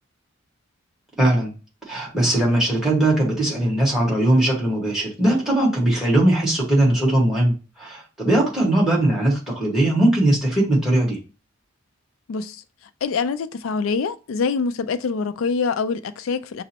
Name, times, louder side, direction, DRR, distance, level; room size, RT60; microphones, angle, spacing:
voice 1, 1.2-1.5 1.9-11.2, right 1 dB, ahead, 1.5 m, -20 dB
voice 2, 12.3-12.6 13.0-16.6, left 5 dB, 75° left, 0.4 m, -25 dB
6.0 x 2.0 x 2.8 m
head